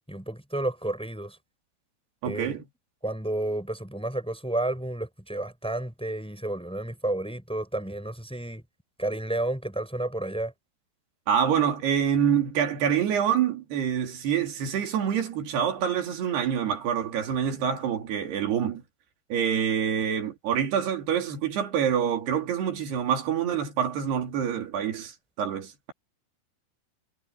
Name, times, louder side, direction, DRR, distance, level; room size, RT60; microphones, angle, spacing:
voice 1, 0.1-1.4 2.2-2.6 3.0-8.6 9.0-10.5, right 1 dB, ahead, 4.8 m, -31 dB
voice 2, 2.2-2.6 11.3-18.8 19.3-25.9, right 8 dB, 80° right, 4.7 m, -26 dB
omnidirectional pair, 4.6 m